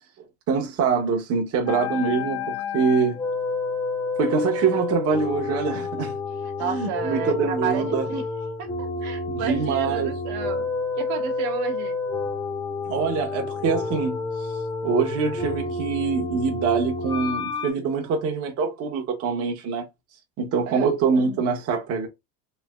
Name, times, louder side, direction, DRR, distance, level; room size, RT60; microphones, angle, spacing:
voice 1, 0.5-3.2 4.2-6.2 6.6-8.1 9.3-10.2 12.9-14.5 14.8-19.9 20.4-22.1, right 5 dB, 45° right, 0.8 m, -24 dB
sound 1, 1.7-17.7, left 3 dB, 10° left, 0.4 m, -29 dB
voice 2, 6.6-8.2 8.6-10.7 11.0-12.0 20.7-20.9, right 7 dB, 75° right, 1.1 m, -31 dB
3.2 x 2.7 x 2.2 m
cardioid pair, 130°, 34 cm